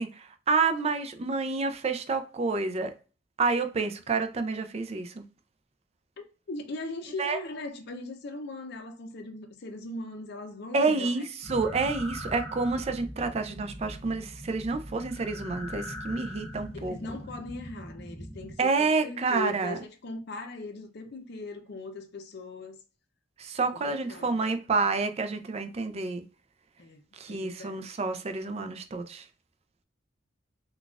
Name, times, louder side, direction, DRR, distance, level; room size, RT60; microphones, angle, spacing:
voice 1, 0.0-2.9 3.4-5.3 7.2-7.4 10.7-17.2 18.6-19.8 23.4-26.2 27.1-29.3, right 4 dB, 35° right, 0.4 m, -29 dB
voice 2, 6.5-11.1 16.7-22.8 24.1-24.3 26.8-27.0 27.3-28.0, left 2 dB, 60° left, 0.6 m, -39 dB
sound 1, 11.4-18.5, equal, 20° left, 0.7 m, -41 dB
3.9 x 2.3 x 2.3 m
head